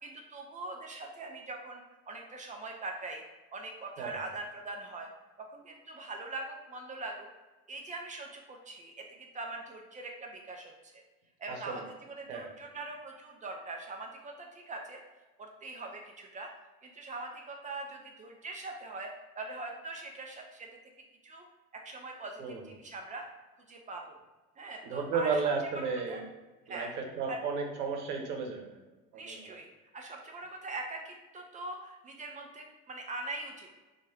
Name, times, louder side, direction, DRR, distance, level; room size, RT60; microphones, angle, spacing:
voice 1, 0.0-3.2 3.5-5.1 5.5-7.3 7.7-11.0 11.4-15.0 15.4-16.5 16.8-20.7 21.2-21.4 21.8-23.3 23.7-24.2 24.6-26.2 26.7-26.9 27.3-27.4 29.2-29.7 29.9-33.7, right 2 dB, 20° right, 2 dB, 0.4 m, -42 dB
voice 2, 11.5-11.8 12.3-12.5 22.4-22.6 24.8-26.2 26.7-28.7 29.1-29.4, right 5 dB, 75° right, 3 dB, 0.9 m, -33 dB
3.0 x 2.4 x 4.3 m, 1.2 s
hypercardioid pair, 85°, 46 cm